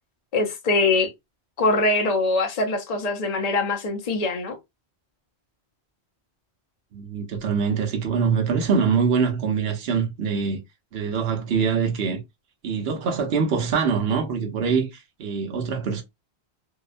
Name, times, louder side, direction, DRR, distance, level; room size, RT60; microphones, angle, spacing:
voice 1, 0.3-1.1 1.6-4.6, left 2 dB, 45° left, 0.6 m, -23 dB
voice 2, 6.9-10.6 10.9-12.2 12.6-16.0, right 6 dB, 65° right, 0.9 m, -24 dB
2.8 x 2.1 x 2.4 m
omnidirectional pair, 1.1 m